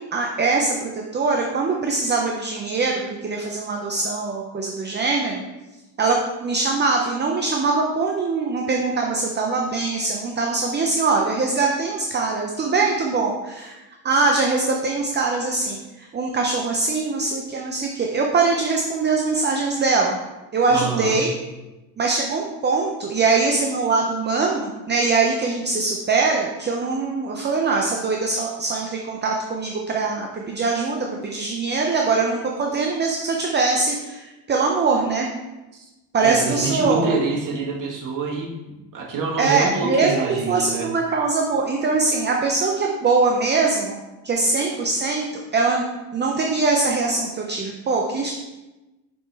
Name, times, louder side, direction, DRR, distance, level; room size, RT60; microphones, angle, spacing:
voice 1, 0.1-5.4 6.0-6.2 6.4-13.8 14.0-20.2 20.5-21.3 22.0-35.3 36.1-37.2 39.4-45.8 46.1-48.3, right 4 dB, 25° right, 1 dB, 0.6 m, -22 dB
voice 2, 20.7-21.2 35.7-35.8 36.2-40.9, right 3 dB, 45° right, -1 dB, 1.6 m, -26 dB
5.5 x 5.4 x 3.4 m, 1.1 s
cardioid pair, 105°, 45 cm